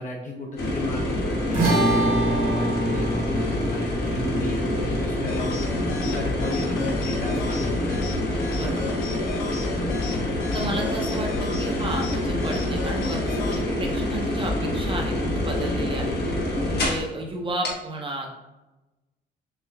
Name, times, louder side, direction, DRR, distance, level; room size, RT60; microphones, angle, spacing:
voice 1, 0.0-8.0, left 1 dB, 40° left, -1 dB, 0.7 m, -34 dB
sound 1, 0.6-17.1 17.6-17.7, left 1 dB, 55° left, 1.0 m, -26 dB
sound 2, 1.5-8.1, right 1 dB, 85° right, 1.4 m, -27 dB
sound 3, 5.3-13.6, left 3 dB, 85° left, 0.6 m, -35 dB
voice 2, 8.5-9.0 10.5-16.2 16.6-18.3, right 1 dB, 25° right, 0 dB, 0.8 m, -32 dB
4.6 x 2.4 x 2.3 m, 1.0 s
cardioid pair, 90°, 20 cm